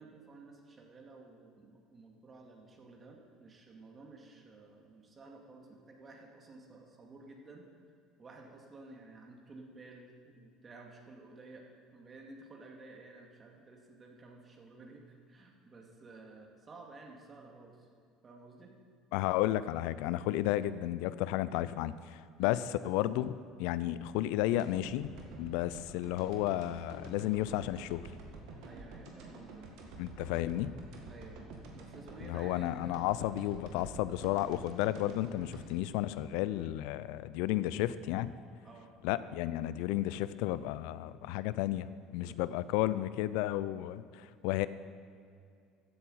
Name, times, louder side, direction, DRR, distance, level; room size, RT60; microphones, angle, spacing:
voice 1, 0.0-7.7 8.2-17.9 18.2-18.7 22.4-22.6 28.6-29.7 30.2-30.5 31.1-31.4 31.7-33.1 38.6-38.9 39.3-39.4 39.7-39.8 42.2-42.5, right 3 dB, 30° right, 1 dB, 2.4 m, -53 dB
voice 2, 19.1-25.1 25.4-28.1 30.0-30.7 32.2-38.3 39.0-44.7, left 14 dB, 70° left, 15 dB, 0.4 m, -33 dB
sound 1, 24.6-36.8 37.2-37.3, right 3 dB, 65° right, 1.9 m, -49 dB
14.0 x 8.2 x 5.7 m, 2.4 s
hypercardioid pair, 65°, 0 cm